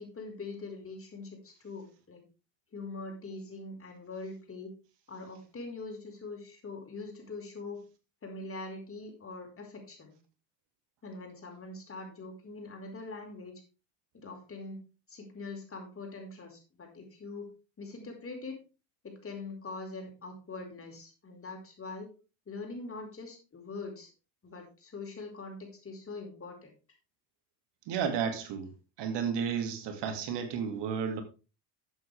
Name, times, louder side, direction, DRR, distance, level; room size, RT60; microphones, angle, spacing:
voice 1, 0.0-2.2 2.7-4.7 5.1-7.8 8.2-10.1 11.0-13.5 14.1-14.8 15.1-17.5 17.8-18.6 19.0-22.1 22.5-24.1 24.4-26.7, left 3 dB, 25° left, 4.6 m, -43 dB
voice 2, 27.9-28.7 29.0-31.2, right 7 dB, 55° right, 2.4 m, -32 dB
13.0 x 7.9 x 3.4 m
supercardioid pair, 90°, 49 cm